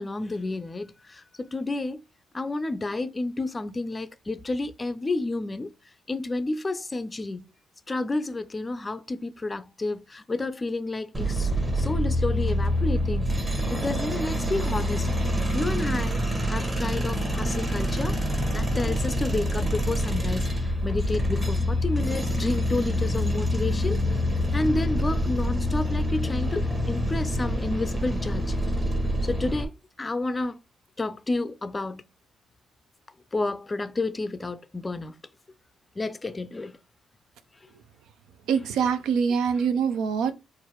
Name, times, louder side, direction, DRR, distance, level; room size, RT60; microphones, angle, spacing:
voice 1, 0.0-2.0 2.3-5.7 6.1-7.5 7.9-11.5 11.8-13.4 13.7-15.1 15.5-18.2 18.5-20.5 20.8-24.0 24.5-28.6 29.2-29.7 30.0-30.6 31.0-32.0 33.3-35.1 36.0-36.8, left 2 dB, 25° left, 0.4 m, -30 dB
sound 1, 11.1-29.6, equal, 25° right, 1.1 m, -26 dB
voice 2, 38.5-40.3, right 6 dB, 90° right, 0.5 m, -24 dB
4.5 x 2.5 x 3.0 m
cardioid pair, 90°, 0 cm